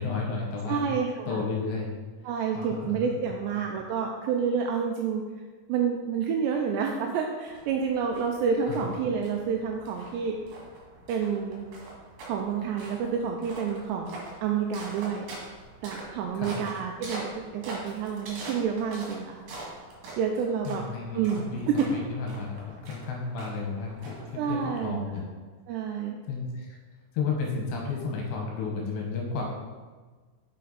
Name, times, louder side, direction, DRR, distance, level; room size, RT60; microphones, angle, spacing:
voice 1, 0.0-0.8 1.3-1.9 2.5-3.2 8.6-8.8 16.3-16.5 20.7-25.2 25.9-26.8 27.1-29.4, left 4 dB, 75° left, -1 dB, 3.0 m, -33 dB
voice 2, 0.7-1.5 2.2-5.2 5.7-10.4 11.1-11.7 12.3-14.1 14.4-15.2 15.8-19.4 20.2-20.8 21.1-21.9 24.4-25.3 25.7-26.2, right 6 dB, 85° right, 2 dB, 2.5 m, -29 dB
sound 1, 7.5-25.2, right 2 dB, 70° right, 3.9 m, -44 dB
7.5 x 6.7 x 4.1 m, 1.4 s
omnidirectional pair, 5.5 m